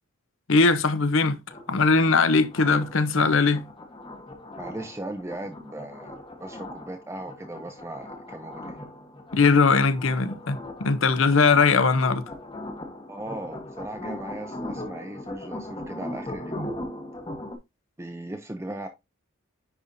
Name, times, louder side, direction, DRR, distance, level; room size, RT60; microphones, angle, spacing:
voice 1, 0.5-1.4 1.7-3.6 9.3-12.2, left 4 dB, 60° left, 0.7 m, -20 dB
sound 1, 1.5-17.6, left 1 dB, 20° left, 1.0 m, -39 dB
voice 2, 4.6-8.8 13.1-16.7 18.0-18.9, right 1 dB, 15° right, 0.6 m, -38 dB
9.9 x 4.2 x 2.6 m
head